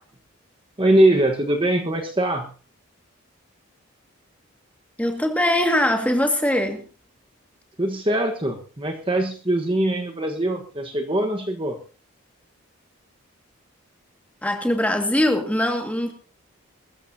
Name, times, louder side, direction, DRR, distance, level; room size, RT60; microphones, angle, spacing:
voice 1, 0.8-2.5 7.8-11.8, right 1 dB, 25° right, 3 dB, 1.3 m, -22 dB
voice 2, 5.0-6.8 14.4-16.1, left 1 dB, 5° left, 4 dB, 2.0 m, -21 dB
21.5 x 14.0 x 2.8 m, 0.34 s
head